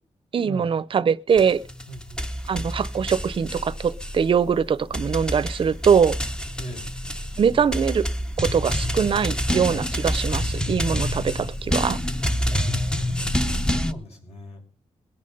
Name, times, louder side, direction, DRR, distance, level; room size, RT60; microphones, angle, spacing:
voice 1, 0.3-1.6 2.5-6.1 7.4-8.1 8.4-12.0, right 7 dB, 45° right, 0.6 m, -22 dB
sound 1, 1.4-13.9, equal, 5° left, 0.7 m, -27 dB
voice 2, 1.9-2.3 6.6-6.9 12.5-14.6, equal, 65° left, 6.6 m, -39 dB
21.5 x 8.6 x 5.4 m
wide cardioid pair, 165°, 12 cm